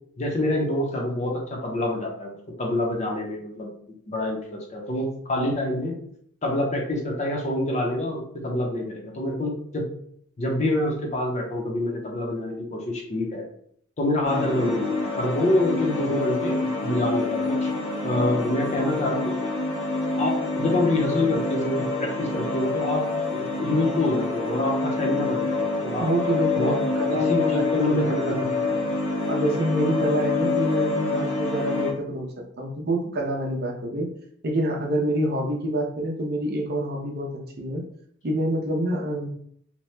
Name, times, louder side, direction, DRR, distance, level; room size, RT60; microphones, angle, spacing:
voice 1, 0.2-3.7 4.1-5.9 6.4-9.9 10.4-13.4 14.0-17.7 18.0-19.4 20.2-26.1 26.6-26.8 27.1-28.4, left 1 dB, 35° left, 0 dB, 0.6 m, -26 dB
sound 1, 14.2-31.9, left 3 dB, 80° left, 1.2 m, -27 dB
voice 2, 26.0-28.8 29.3-34.1 34.4-37.3 37.6-37.8 38.2-39.3, right 1 dB, 50° right, 0 dB, 0.6 m, -27 dB
2.8 x 2.1 x 3.1 m, 0.65 s
head